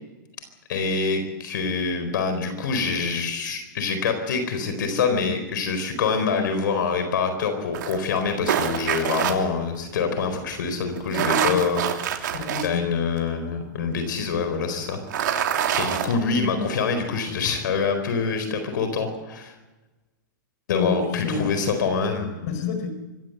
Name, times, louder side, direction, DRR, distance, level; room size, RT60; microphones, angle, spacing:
voice 1, 0.7-11.8 12.6-15.5 15.8-19.5 20.7-22.3, left 5 dB, 75° left, 8 dB, 4.4 m, -25 dB
sound 1, 7.7-9.3 11.0-12.7 13.2-13.3 14.9-16.1, right 9 dB, 70° right, 3.0 m, -25 dB
voice 2, 11.2-11.7 12.3-12.9 20.7-21.5 22.4-22.9, left 4 dB, 55° left, 8 dB, 4.6 m, -28 dB
25.0 x 15.5 x 8.0 m, 1.1 s
hypercardioid pair, 135°, 11 cm